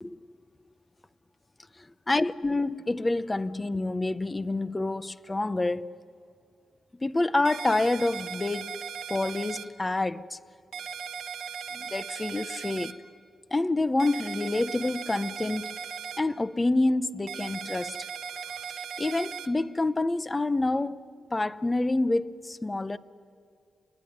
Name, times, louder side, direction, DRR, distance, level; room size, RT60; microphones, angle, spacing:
voice 1, 2.1-5.9 7.0-8.8 9.1-10.4 11.7-13.0 13.5-15.7 16.2-18.0 19.0-21.0 21.3-23.0, left 2 dB, 20° left, 0.8 m, -27 dB
sound 1, 7.5-9.7 10.7-12.9 14.0-16.2 17.3-19.5, right 7 dB, 75° right, 1.3 m, -38 dB
30.0 x 21.0 x 9.5 m
cardioid pair, 100°, 0 cm